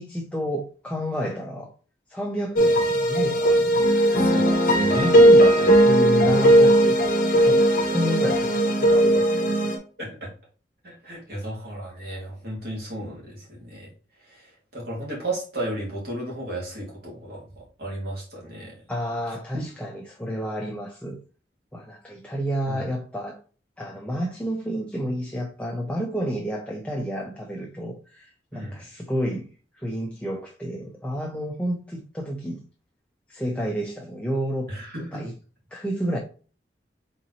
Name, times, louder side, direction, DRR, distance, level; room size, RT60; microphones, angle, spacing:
voice 1, 0.0-1.7 2.1-3.8 4.9-7.1 7.3-9.7 18.9-21.2 21.7-23.4 23.8-29.5 29.8-32.6 33.3-34.7 35.1-35.3 35.7-36.2, equal, 5° left, 0.6 m, -30 dB
sound 1, 2.6-9.8, right 1 dB, 50° left, 0.9 m, -18 dB
voice 2, 4.2-5.1 10.0-10.3 10.8-13.9 14.3-18.7 19.5-19.7 22.7-22.8 28.5-28.7 34.7-35.2, right 1 dB, 60° right, 2.2 m, -34 dB
4.3 x 3.8 x 3.0 m
head